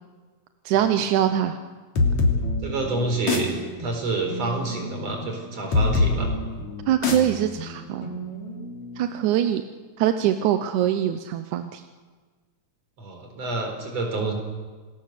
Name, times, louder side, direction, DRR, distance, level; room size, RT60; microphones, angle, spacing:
voice 1, 0.7-1.6 6.9-8.1 9.0-9.6 10.0-11.8, right 11 dB, 90° right, 8 dB, 2.3 m, -23 dB
sound 1, 1.9-9.3, left 3 dB, 70° left, 4.3 m, -26 dB
voice 2, 2.6-3.5 3.8-6.3 13.0-14.3, right 3 dB, 60° right, 3 dB, 5.4 m, -28 dB
28.0 x 20.0 x 6.7 m, 1.4 s
omnidirectional pair, 3.4 m